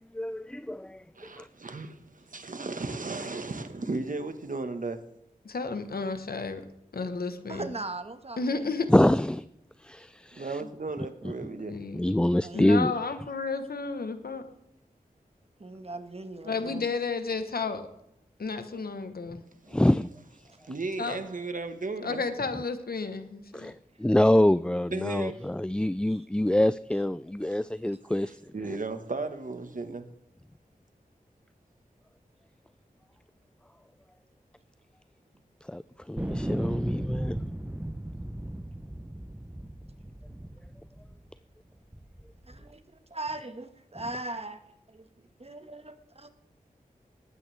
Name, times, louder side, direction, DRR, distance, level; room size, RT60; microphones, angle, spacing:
voice 1, 0.1-1.0 1.4-1.5 8.9-9.4 9.8-10.6 11.9-12.9 19.7-20.1 23.5-28.4 35.7-35.8 36.1-37.4, left 1 dB, 5° left, 0.3 m, -25 dB
voice 2, 1.1-5.0 10.3-11.8 19.6-19.8 20.7-22.2 24.9-25.4 27.4-27.6 28.3-30.1, right 3 dB, 60° right, 1.5 m, -35 dB
voice 3, 5.4-6.6 6.9-7.7 8.4-8.9 11.7-12.2 12.5-14.4 16.4-17.9 18.4-19.4 21.0-21.2 22.0-23.7, left 4 dB, 80° left, 1.3 m, -32 dB
voice 4, 7.5-8.7 12.4-12.7 15.6-16.9 26.1-26.2 42.5-42.8 43.1-44.6 44.9-45.0 45.4-46.3, right 2 dB, 40° right, 1.6 m, -39 dB
sound 1, 36.2-41.4 41.9-42.7, right 1 dB, 10° right, 0.8 m, -36 dB
19.5 x 9.2 x 3.5 m
cardioid pair, 50°, 15 cm